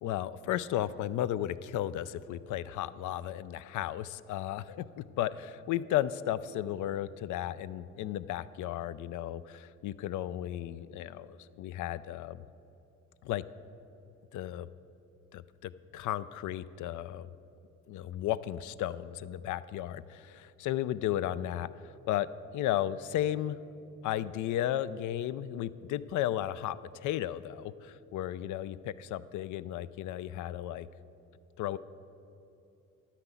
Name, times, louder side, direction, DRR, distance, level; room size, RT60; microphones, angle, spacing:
voice 1, 0.0-12.4 13.2-13.4 14.3-14.7 15.3-17.3 17.9-23.6 24.0-30.9 31.6-31.8, left 12 dB, 80° left, 15 dB, 0.4 m, -34 dB
10.5 x 5.9 x 8.1 m, 2.9 s
cardioid pair, 90°, 30 cm